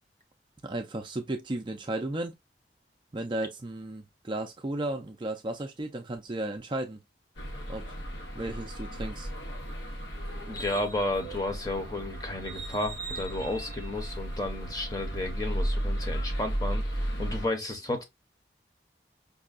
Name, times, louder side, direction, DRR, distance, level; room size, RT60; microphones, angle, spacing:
voice 1, 0.6-2.3 3.1-7.0 7.6-7.8 8.3-9.3, right 1 dB, 25° right, 0.4 m, -34 dB
sound 1, 7.4-17.5, right 1 dB, 90° left, 1.0 m, -34 dB
voice 2, 10.5-16.8 17.2-18.0, left 2 dB, 20° left, 0.8 m, -32 dB
5.3 x 2.2 x 2.4 m
head